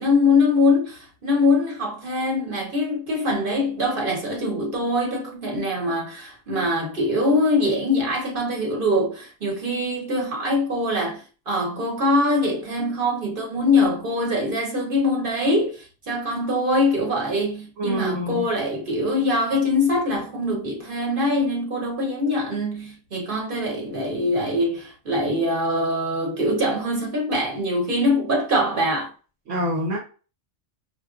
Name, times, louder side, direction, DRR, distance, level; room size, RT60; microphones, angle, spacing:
voice 1, 0.0-29.1, left 2 dB, 50° right, 0.9 m, -23 dB
voice 2, 17.8-18.4 29.5-30.0, equal, 75° right, 1.2 m, -26 dB
4.5 x 2.1 x 2.4 m
omnidirectional pair, 1.2 m